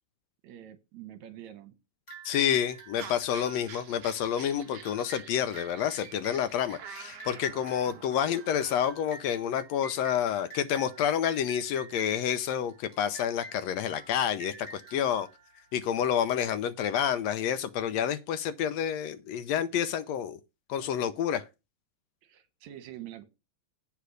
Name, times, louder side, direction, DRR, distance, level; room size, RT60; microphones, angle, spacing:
voice 1, 0.4-1.8 7.9-8.0 22.2-23.2, right 12 dB, 75° right, 2.3 m, -46 dB
sound 1, 2.1-16.2, right 1 dB, 25° left, 4.2 m, -49 dB
voice 2, 2.2-15.3 15.7-20.4 20.7-21.4, left 9 dB, 75° left, 1.7 m, -29 dB
sound 2, 3.0-8.9, right 7 dB, 55° right, 1.2 m, -48 dB
8.4 x 5.8 x 6.4 m
omnidirectional pair, 3.3 m